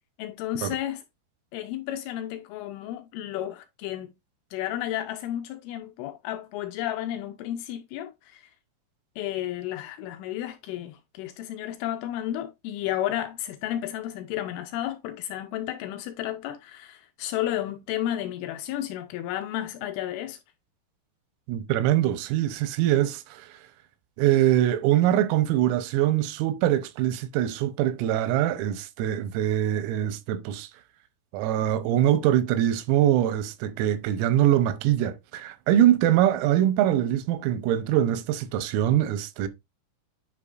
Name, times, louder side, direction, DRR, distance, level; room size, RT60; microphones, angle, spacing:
voice 1, 0.2-1.0 1.5-4.1 4.5-8.5 9.2-20.4, left 12 dB, 80° left, 3.0 m, -32 dB
voice 2, 21.5-23.6 24.2-30.7 31.3-39.5, right 12 dB, 90° right, 3.5 m, -23 dB
9.6 x 5.0 x 2.4 m
omnidirectional pair, 5.9 m